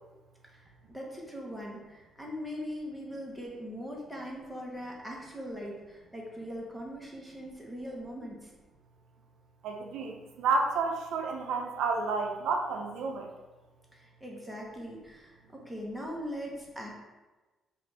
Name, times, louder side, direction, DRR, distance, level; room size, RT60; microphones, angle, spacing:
voice 1, 0.4-8.5 13.9-16.9, equal, 5° right, -2 dB, 1.0 m, -41 dB
voice 2, 9.6-13.3, right 4 dB, 85° right, 3 dB, 0.4 m, -30 dB
5.0 x 2.5 x 3.3 m, 1.2 s
cardioid pair, 90°, 0 cm